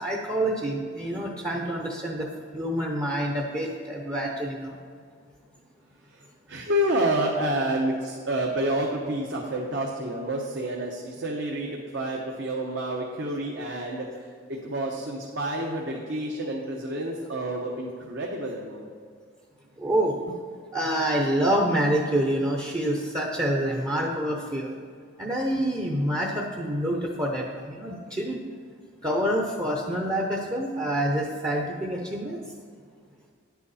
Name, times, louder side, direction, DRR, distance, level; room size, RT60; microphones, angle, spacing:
voice 1, 0.0-4.8 19.8-20.2 20.7-24.7 25.2-28.4 29.0-32.4, right 1 dB, 20° right, -1 dB, 0.7 m, -27 dB
voice 2, 6.1-18.9 29.1-29.2, right 1 dB, 60° right, -1 dB, 1.0 m, -29 dB
10.5 x 8.2 x 4.2 m, 2.1 s
head